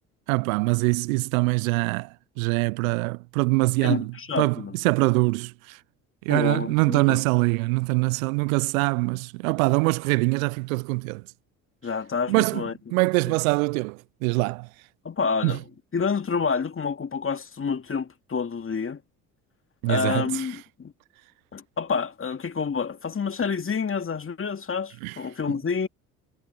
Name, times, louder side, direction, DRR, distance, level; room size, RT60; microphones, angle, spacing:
voice 1, 0.3-5.8 6.3-11.2 12.3-14.7 15.4-15.6 19.8-20.5 25.0-25.2, right 27 dB, 75° right, 0.5 m, -24 dB
voice 2, 3.8-4.7 6.3-7.2 11.8-12.7 13.3-13.4 15.0-15.6 15.9-19.0 19.9-20.9 21.5-25.9, left 5 dB, 30° left, 2.3 m, -28 dB
hypercardioid pair, 55°, 42 cm